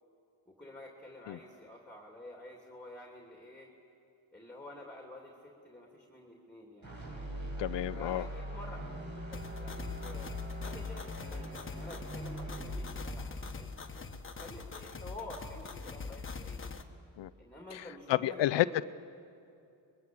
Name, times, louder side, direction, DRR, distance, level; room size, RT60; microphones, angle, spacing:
voice 1, 0.5-3.7 4.3-6.9 7.9-16.7 17.4-18.8, left 1 dB, 5° left, 0 dB, 2.8 m, -49 dB
sound 1, 6.8-15.0, equal, 40° right, 5.8 m, -42 dB
voice 2, 7.6-8.2 17.2-17.3 18.1-18.8, left 14 dB, 75° left, 16 dB, 0.6 m, -30 dB
sound 2, 9.3-16.8, left 4 dB, 30° left, 1.4 m, -43 dB
25.0 x 21.5 x 7.7 m, 2.6 s
cardioid pair, 105°, 43 cm